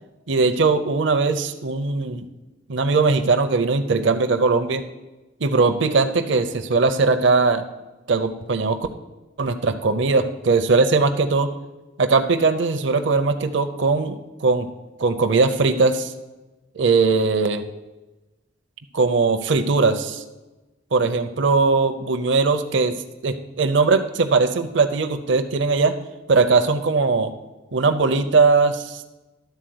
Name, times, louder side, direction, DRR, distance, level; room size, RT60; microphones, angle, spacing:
voice 1, 0.3-2.3 2.7-4.8 5.4-7.6 8.1-8.8 9.4-11.5 12.0-14.7 15.0-16.1 16.8-17.6 18.9-20.2 20.9-22.9 23.2-25.9 26.3-27.3 27.7-29.1, right 4 dB, 65° right, 7 dB, 0.6 m, -20 dB
11.5 x 4.1 x 7.8 m, 1.1 s
head